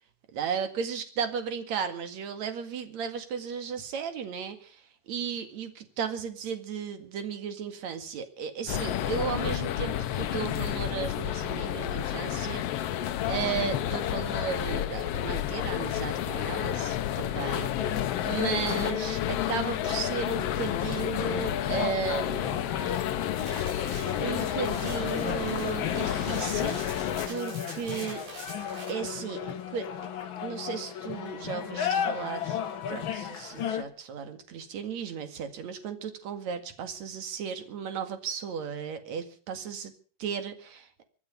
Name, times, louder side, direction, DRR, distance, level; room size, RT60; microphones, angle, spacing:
voice 1, 0.3-22.6 22.9-23.0 24.2-26.9 27.3-28.2 28.9-29.9 30.4-32.6 32.9-39.9 40.2-40.9, right 7 dB, 55° right, 8 dB, 3.2 m, -35 dB
sound 1, 8.7-27.3, left 12 dB, 75° left, 1.4 m, -31 dB
sound 2, 17.8-33.8, left 8 dB, 55° left, 1.5 m, -35 dB
sound 3, 23.3-28.9, right 2 dB, 75° right, 7.8 m, -44 dB
25.0 x 10.5 x 5.3 m, 0.42 s
omnidirectional pair, 3.9 m